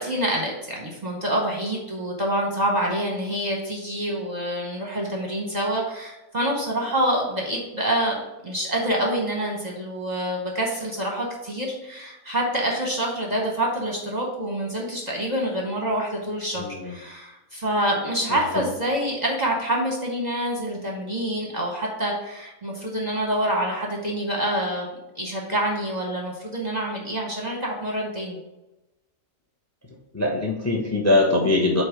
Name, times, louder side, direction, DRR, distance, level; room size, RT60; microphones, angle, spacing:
voice 1, 0.0-8.2 8.4-24.9 25.1-28.4, right 1 dB, 35° right, -1 dB, 0.9 m, -26 dB
voice 2, 16.6-17.0 18.3-18.7 30.1-31.8, left 2 dB, 15° left, -1 dB, 0.7 m, -22 dB
7.9 x 2.7 x 5.0 m, 0.99 s
omnidirectional pair, 1.6 m